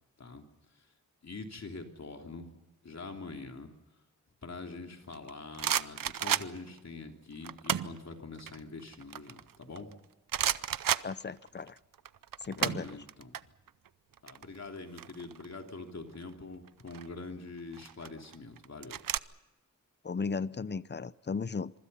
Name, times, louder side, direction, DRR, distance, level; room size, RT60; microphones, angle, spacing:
voice 1, 1.2-2.5 2.8-3.7 4.4-9.9 12.5-13.3 14.2-19.0, left 3 dB, 55° left, 3 dB, 3.2 m, -44 dB
sound 1, 5.1-6.8 7.4-8.0 8.4-9.9 10.3-11.7 11.9-13.4 13.7-13.9 14.1-15.7 16.7-17.1 17.7-19.2, right 9 dB, 85° right, 0.7 m, -32 dB
voice 2, 11.0-11.8 12.4-13.0 20.0-21.7, left 5 dB, 35° left, 17 dB, 0.7 m, -35 dB
26.0 x 24.5 x 5.6 m, 1.1 s
wide cardioid pair, 105°, 33 cm